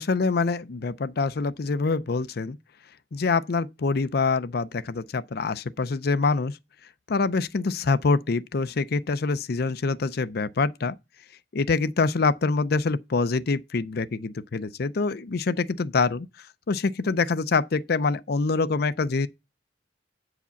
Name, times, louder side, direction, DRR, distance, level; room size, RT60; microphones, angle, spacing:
voice 1, 0.0-2.6 3.1-6.6 7.1-11.0 11.5-16.3 16.7-19.3, left 4 dB, 55° left, 0.5 m, -25 dB
9.1 x 4.9 x 7.0 m
head